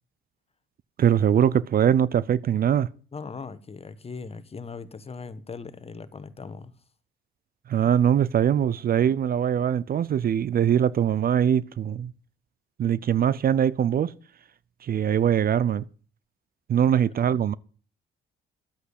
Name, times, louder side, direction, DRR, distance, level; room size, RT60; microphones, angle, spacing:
voice 1, 1.0-2.9 7.7-12.1 12.8-14.1 14.8-15.8 16.7-17.5, right 9 dB, 50° right, 0.5 m, -22 dB
voice 2, 3.1-6.7 16.8-17.4, left 4 dB, 30° left, 1.3 m, -40 dB
12.0 x 8.1 x 8.2 m
cardioid pair, 90°, 20 cm